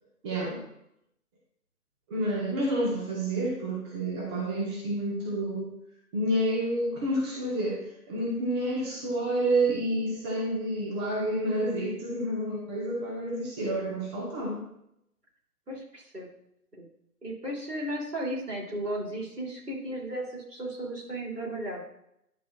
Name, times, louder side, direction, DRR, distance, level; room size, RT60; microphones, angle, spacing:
voice 1, 0.2-0.6 2.1-5.7 6.1-14.6, right 1 dB, 15° right, -4 dB, 1.3 m, -29 dB
voice 2, 15.7-16.3 16.7-16.9 17.2-21.8, right 1 dB, 85° right, -3 dB, 3.1 m, -35 dB
10.5 x 6.0 x 2.4 m, 0.76 s
figure-of-eight pair, 145°, 46 cm